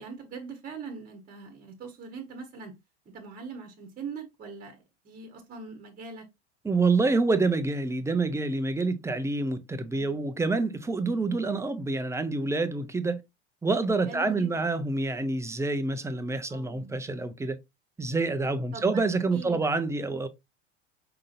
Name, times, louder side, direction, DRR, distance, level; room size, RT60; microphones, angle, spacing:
voice 1, 0.0-2.7 3.1-6.3 9.9-10.2 14.1-14.5 16.5-16.9 18.7-19.0 19.3-19.7, right 5 dB, 25° right, 1.3 m, -42 dB
voice 2, 6.6-13.2 13.6-17.6 18.0-20.3, right 3 dB, 10° right, 0.6 m, -27 dB
5.6 x 3.7 x 2.5 m
hypercardioid pair, 85°, 34 cm